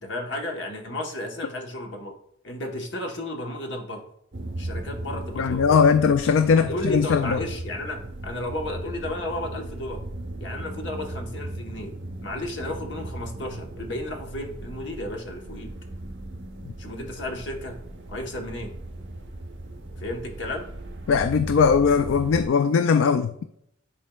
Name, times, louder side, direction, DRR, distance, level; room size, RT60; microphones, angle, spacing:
voice 1, 0.0-2.1 2.4-4.0 4.6-5.8 6.6-10.0 10.4-11.9 12.2-15.7 16.8-17.8 18.1-18.7 20.0-20.7, left 1 dB, 60° left, 1.1 m, -33 dB
sound 1, 4.3-22.5, right 1 dB, 65° right, 1.0 m, -37 dB
voice 2, 5.4-7.4 21.1-23.4, left 6 dB, 80° left, 0.3 m, -20 dB
10.0 x 4.3 x 2.3 m
head